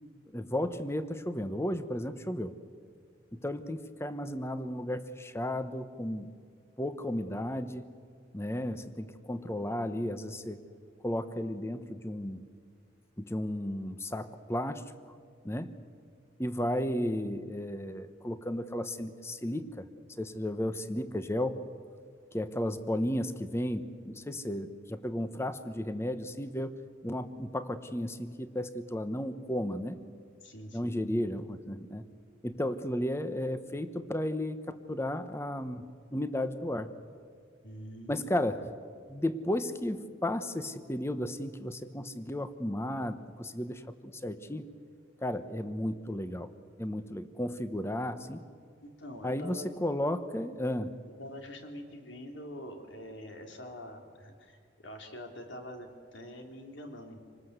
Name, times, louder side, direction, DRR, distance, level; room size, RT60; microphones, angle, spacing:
voice 1, 0.3-2.6 3.3-6.3 6.8-7.8 8.3-10.6 11.0-12.4 13.2-14.8 15.4-15.7 16.4-19.9 20.2-21.6 22.3-30.0 30.7-32.1 32.4-36.9 38.1-38.6 39.1-44.6 45.2-46.5 46.8-48.4 49.2-50.9, left 1 dB, 15° left, 11 dB, 0.9 m, -34 dB
voice 2, 30.4-31.0 37.6-38.2 48.8-49.8 51.2-57.2, left 1 dB, 65° left, 4 dB, 3.3 m, -45 dB
26.5 x 19.5 x 8.1 m, 2.1 s
head